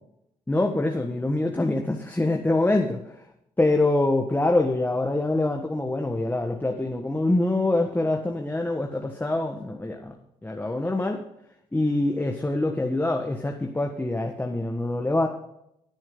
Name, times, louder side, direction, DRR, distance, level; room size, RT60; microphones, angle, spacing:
voice 1, 0.5-3.0 3.6-10.1 10.4-11.2 11.7-15.3, left 2 dB, 15° left, 3 dB, 1.5 m, -25 dB
16.0 x 8.9 x 3.9 m, 0.78 s
supercardioid pair, 65°, 14 cm